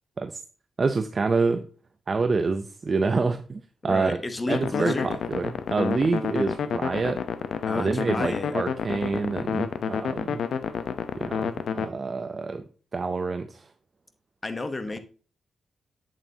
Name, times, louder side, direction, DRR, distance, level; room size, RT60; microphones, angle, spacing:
voice 1, 0.8-1.7 2.1-4.2 4.5-7.2 7.7-10.4 11.2-12.6 12.9-13.7, right 4 dB, 35° right, 0.5 m, -27 dB
voice 2, 3.9-5.1 7.6-8.6 14.4-15.0, left 2 dB, 25° left, 0.9 m, -31 dB
sound 1, 4.5-11.9, left 7 dB, 75° left, 0.7 m, -29 dB
8.1 x 7.4 x 2.8 m
wide cardioid pair, 130°, 0 cm